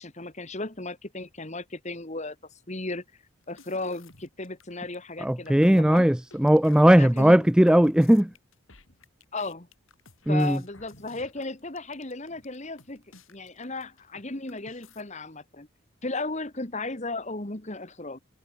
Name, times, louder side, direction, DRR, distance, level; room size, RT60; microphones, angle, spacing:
voice 1, 0.0-2.4 2.7-3.0 3.5-6.1 7.0-7.4 9.3-9.7 10.3-13.0 13.3-15.7 16.0-18.2, left 2 dB, 30° left, 1.7 m, -35 dB
sound 1, 3.4-4.6 4.9-5.0 5.3-14.2 14.5-15.0, left 3 dB, 70° left, 7.7 m, -54 dB
voice 2, 5.2-8.3 10.3-10.6, equal, 5° right, 0.3 m, -18 dB
head